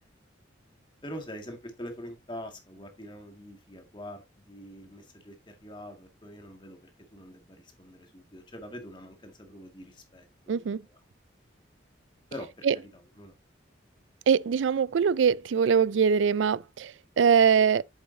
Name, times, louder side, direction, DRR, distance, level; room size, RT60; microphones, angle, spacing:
voice 1, 1.0-10.9 12.3-13.3, equal, 25° left, 2.1 m, -44 dB
voice 2, 10.5-10.8 12.7-12.8 14.3-17.8, right 7 dB, 80° right, 0.4 m, -23 dB
8.7 x 7.0 x 2.8 m
head